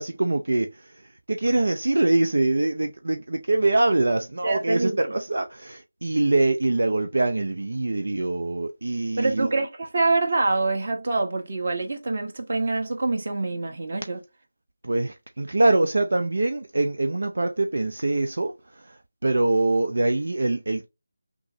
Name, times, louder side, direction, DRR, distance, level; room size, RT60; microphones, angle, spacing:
voice 1, 0.0-9.5 14.8-20.9, right 2 dB, 65° right, 0.6 m, -24 dB
voice 2, 4.4-5.0 9.2-14.2, right 3 dB, 45° right, 1.1 m, -25 dB
6.0 x 2.0 x 2.7 m
figure-of-eight pair, 160°, 0 cm